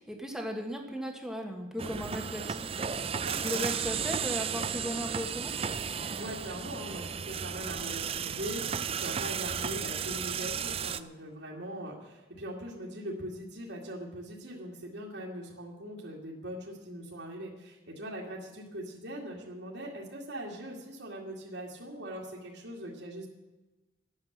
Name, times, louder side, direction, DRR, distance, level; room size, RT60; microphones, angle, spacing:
voice 1, 0.0-2.7 3.3-5.5, equal, 5° right, 2 dB, 1.4 m, -36 dB
sound 1, 1.8-11.0, right 7 dB, 30° right, 0.4 m, -34 dB
voice 2, 3.2-3.7 6.1-23.3, equal, 75° right, -5 dB, 2.3 m, -41 dB
13.5 x 9.7 x 7.3 m, 1.1 s
head